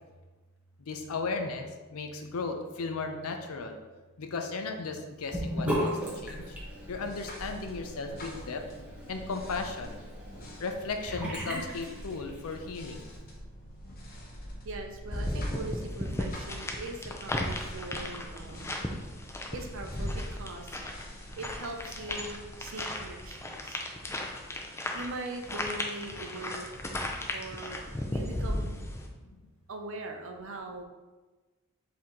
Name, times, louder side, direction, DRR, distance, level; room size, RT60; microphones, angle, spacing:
voice 1, 0.9-3.8 4.2-5.9 6.2-6.5 6.9-8.6 9.1-10.0 10.6-13.1, left 4 dB, 75° left, 5 dB, 0.5 m, -35 dB
Sink (filling or washing) / Bathtub (filling or washing), 5.3-12.6, equal, 5° right, 0.7 m, -37 dB
sound 1, 5.6-23.4, equal, 40° left, 0.8 m, -47 dB
voice 2, 14.6-18.8 19.5-21.1 21.3-23.8 24.9-26.7 27.3-27.8 28.1-28.8 29.7-30.8, right 2 dB, 60° right, 4 dB, 0.5 m, -41 dB
sound 2, 15.1-29.1, left 1 dB, 10° left, 0.4 m, -36 dB
4.4 x 2.7 x 3.7 m, 1.2 s
head